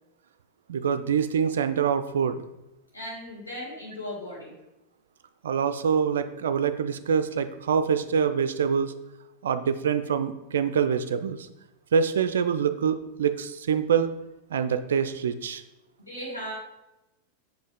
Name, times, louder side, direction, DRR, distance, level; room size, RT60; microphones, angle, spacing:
voice 1, 0.7-2.4 5.4-8.9 9.4-11.5 11.9-14.1 14.5-15.6, right 7 dB, 65° right, 11 dB, 0.3 m, -25 dB
voice 2, 2.9-4.5 16.0-16.5, equal, 80° left, -5 dB, 2.4 m, -37 dB
7.0 x 5.2 x 3.6 m, 0.95 s
figure-of-eight pair, 90°, 0 cm